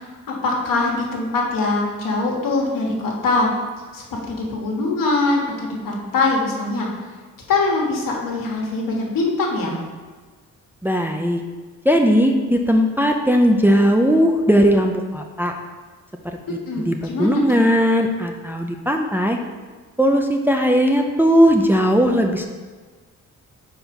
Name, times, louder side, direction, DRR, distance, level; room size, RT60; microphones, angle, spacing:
voice 1, 0.4-3.5 3.9-6.9 7.5-9.8 16.7-17.4, left 3 dB, 75° left, -2 dB, 1.5 m, -22 dB
voice 2, 10.8-11.4 11.8-15.5 16.5-19.4 20.0-22.4, equal, 5° right, 2 dB, 0.5 m, -18 dB
4.5 x 4.5 x 5.2 m, 1.4 s
cardioid pair, 70°, 33 cm